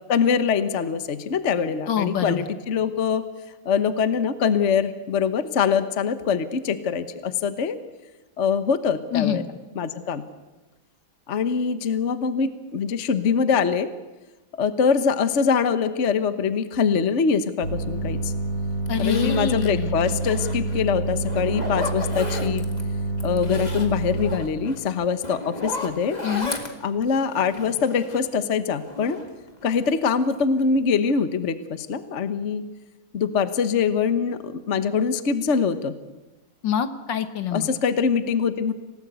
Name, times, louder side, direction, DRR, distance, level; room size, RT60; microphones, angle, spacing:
voice 1, 0.1-3.2 3.6-7.8 8.4-9.4 9.7-10.2 11.3-13.9 14.6-18.3 19.0-22.6 23.2-26.2 26.8-29.2 29.6-32.6 33.1-35.9 37.5-38.7, left 6 dB, 40° left, 11 dB, 1.2 m, -23 dB
voice 2, 1.9-2.5 9.1-9.4 18.9-19.9 26.2-26.5 36.6-37.7, left 8 dB, 65° left, 10 dB, 1.9 m, -25 dB
sound 1, 17.6-24.4, right 2 dB, 75° right, 3.0 m, -27 dB
Zipper (clothing), 18.2-18.3 18.9-20.8 21.2-22.8 23.2-28.4 28.7-30.0 30.3-30.8 31.1-31.2, left 2 dB, 20° left, 2.1 m, -35 dB
27.5 x 18.0 x 8.3 m, 1.1 s
omnidirectional pair, 2.2 m